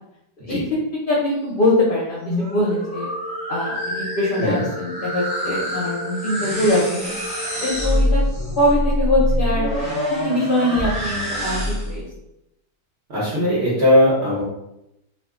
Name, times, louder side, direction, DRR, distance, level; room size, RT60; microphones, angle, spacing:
voice 1, 1.1-3.1 3.5-7.1 7.6-8.2 8.6-9.7 10.2-12.0, left 1 dB, 50° left, -4 dB, 0.6 m, -22 dB
sound 1, 2.0-12.0, equal, 5° right, 0.7 m, -25 dB
sound 2, 2.6-8.2, equal, 80° right, 1.2 m, -36 dB
voice 2, 13.1-14.4, left 1 dB, 50° right, -7 dB, 1.2 m, -18 dB
2.6 x 2.6 x 3.6 m, 0.86 s
omnidirectional pair, 1.6 m